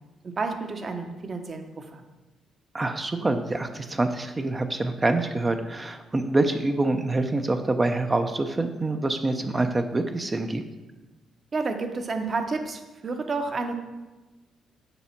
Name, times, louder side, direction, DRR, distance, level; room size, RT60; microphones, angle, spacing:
voice 1, 0.2-2.0 11.5-13.7, right 3 dB, 40° right, 6 dB, 0.9 m, -30 dB
voice 2, 2.7-10.6, right 2 dB, 25° right, 6 dB, 0.5 m, -26 dB
6.9 x 4.2 x 5.8 m, 1.1 s
cardioid pair, 90°, 0 cm